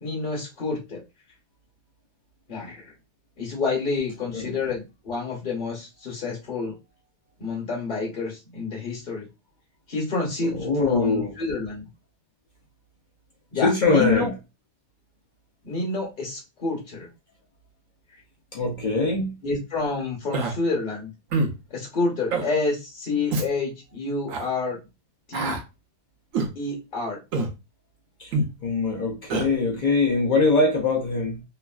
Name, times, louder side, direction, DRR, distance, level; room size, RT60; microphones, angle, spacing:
voice 1, 0.0-1.0 2.5-2.9 3.4-6.8 7.4-9.3 9.9-11.9 13.5-14.3 15.6-17.1 19.4-21.1 21.7-24.8 25.3-25.6 26.5-27.2, left 3 dB, 40° left, 0.8 m, -28 dB
voice 2, 10.5-11.3 13.6-14.3 18.5-19.3 28.2-28.3 28.6-31.4, left 3 dB, 65° left, 0.4 m, -22 dB
Human voice, 20.3-20.5 21.3-21.6 22.3-22.5 23.3-23.5 24.3-24.5 25.3-25.6 26.3-26.5 27.3-27.5 28.3-28.5 29.3-29.5, right 3 dB, 75° right, 1.0 m, -25 dB
3.0 x 2.4 x 2.2 m
omnidirectional pair, 1.5 m